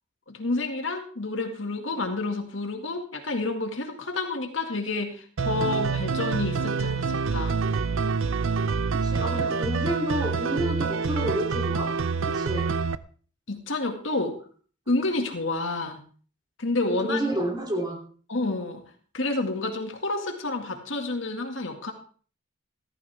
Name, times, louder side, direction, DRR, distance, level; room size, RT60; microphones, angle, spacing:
voice 1, 0.3-7.6 13.5-14.4 14.9-16.0 16.6-17.2 18.3-18.8 19.1-21.9, left 2 dB, 70° left, 4 dB, 2.0 m, -29 dB
sound 1, 5.4-13.0, right 5 dB, 90° right, 0.6 m, -26 dB
voice 2, 8.9-12.8 16.9-18.0, right 1 dB, 20° right, 2 dB, 3.0 m, -30 dB
14.5 x 14.0 x 3.5 m, 0.42 s
head